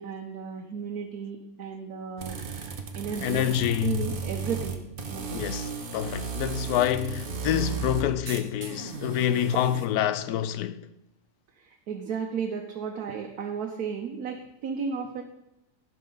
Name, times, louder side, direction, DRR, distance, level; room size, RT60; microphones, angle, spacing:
voice 1, 0.0-2.4 2.9-3.5 3.8-4.8 5.1-5.3 11.6-15.2, right 6 dB, 80° right, 1.3 m, -34 dB
sound 1, 2.2-9.9, right 6 dB, 40° right, 1.0 m, -35 dB
voice 2, 3.2-4.1 5.3-10.9, left 10 dB, 85° left, 1.1 m, -27 dB
15.5 x 5.6 x 3.9 m
omnidirectional pair, 1.6 m